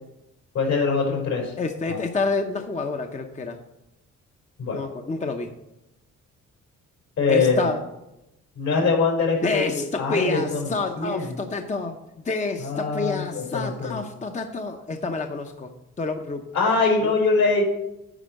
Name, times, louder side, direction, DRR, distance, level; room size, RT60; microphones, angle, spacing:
voice 1, 0.5-1.5 1.9-2.0 4.6-4.8 7.2-7.7 8.6-9.7 10.0-11.4 12.6-14.0 16.5-17.6, left 4 dB, 70° left, -1 dB, 4.2 m, -23 dB
voice 2, 1.6-3.6 4.7-5.5 7.3-7.8 9.4-12.0 12.2-16.4 17.0-17.1, left 3 dB, 25° left, 5 dB, 0.7 m, -28 dB
10.0 x 4.3 x 7.7 m, 0.90 s
cardioid pair, 90°, 30 cm